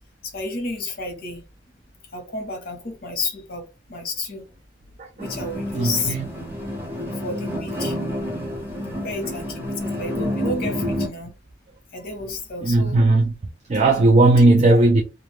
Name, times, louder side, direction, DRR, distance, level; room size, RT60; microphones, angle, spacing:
voice 1, 0.2-1.4 2.1-3.6 3.9-4.4 5.2-6.2 7.1-8.0 9.0-11.3 11.9-13.0 14.2-14.3 14.6-14.8, left 2 dB, 55° left, 0.9 m, -31 dB
voice 2, 5.0-5.4 5.7-6.3 12.6-13.3 13.7-15.0, right 2 dB, 40° right, 0.4 m, -17 dB
sound 1, 5.2-11.1, equal, 10° right, 0.9 m, -29 dB
2.4 x 2.3 x 3.1 m
head